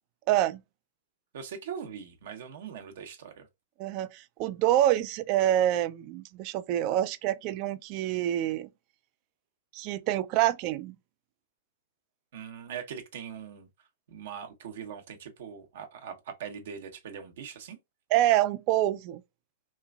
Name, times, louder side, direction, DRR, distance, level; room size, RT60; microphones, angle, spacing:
voice 1, 0.3-0.6 3.8-8.7 9.7-11.0 18.1-19.2, right 13 dB, 45° right, 0.3 m, -26 dB
voice 2, 1.3-3.5 12.3-13.7 14.1-17.8, right 7 dB, 65° right, 0.8 m, -41 dB
3.0 x 2.4 x 2.2 m
hypercardioid pair, 125°, 0 cm